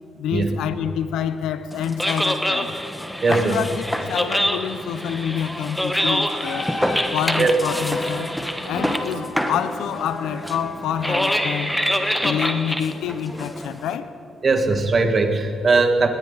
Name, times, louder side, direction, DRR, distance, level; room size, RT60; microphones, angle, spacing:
voice 1, 0.2-2.8 3.3-6.7 7.1-8.3 8.7-11.8 12.2-14.1, left 8 dB, 80° left, 12 dB, 0.7 m, -27 dB
sound 1, 1.7-14.0, equal, 5° left, 1.2 m, -26 dB
voice 2, 3.2-3.6 7.4-7.5 14.4-16.1, right 3 dB, 40° right, 5 dB, 1.8 m, -19 dB
Wind instrument woodwind instrument, 6.0-7.1 7.6-8.1 8.7-11.7, left 3 dB, 60° left, 3.0 m, -35 dB
20.0 x 18.0 x 4.0 m, 2.8 s
cardioid pair, 90°, 0 cm